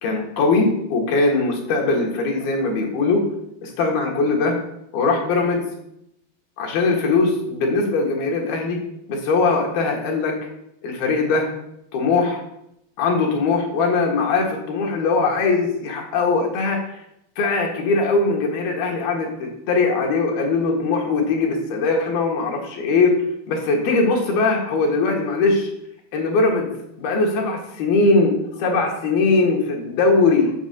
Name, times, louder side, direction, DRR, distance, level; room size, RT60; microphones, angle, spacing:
voice 1, 0.0-3.2 3.6-4.5 4.9-5.7 6.6-8.8 9.1-10.3 10.8-11.5 11.9-12.4 13.0-16.8 17.4-23.1 23.5-25.7 26.1-26.7 27.0-30.5, left 3 dB, 75° left, 1 dB, 3.4 m, -20 dB
7.2 x 6.1 x 6.9 m, 0.80 s
omnidirectional pair, 4.3 m